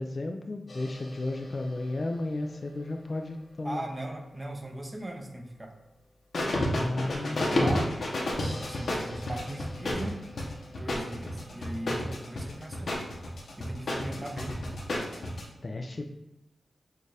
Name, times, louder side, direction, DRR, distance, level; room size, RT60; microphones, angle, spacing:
voice 1, 0.0-3.8 6.7-7.8 14.1-14.3 15.6-16.1, left 2 dB, 40° left, 5 dB, 0.3 m, -34 dB
sound 1, 0.7-2.1 6.3-15.5, left 1 dB, 60° left, 0.8 m, -31 dB
voice 2, 3.6-5.7 7.2-8.0 8.4-10.2 10.8-13.1 13.6-14.6, right 1 dB, 20° right, 2 dB, 0.7 m, -39 dB
6.3 x 2.5 x 3.3 m, 0.87 s
wide cardioid pair, 105°, 0 cm